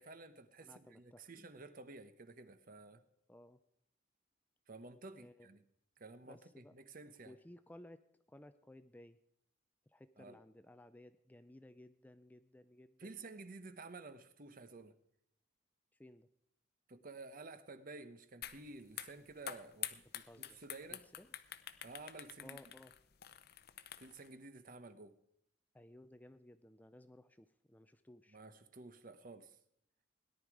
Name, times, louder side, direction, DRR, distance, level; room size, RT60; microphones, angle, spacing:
voice 1, 0.0-3.0 4.7-5.6 6.0-7.3 10.2-10.4 13.0-14.9 16.9-21.0 21.8-22.6 24.0-25.1 28.3-29.6, right 3 dB, 45° right, 11 dB, 1.0 m, -52 dB
voice 2, 0.6-1.5 3.3-3.6 5.2-5.5 6.3-6.7 7.3-8.0 8.3-9.2 9.9-13.1 16.0-16.3 20.2-20.6 20.9-21.3 22.4-22.9 25.7-28.4, left 1 dB, 10° left, 11 dB, 0.4 m, -58 dB
sound 1, 18.4-18.6 18.9-24.3, left 11 dB, 50° left, 0.7 m, -47 dB
18.0 x 11.0 x 4.8 m, 0.74 s
head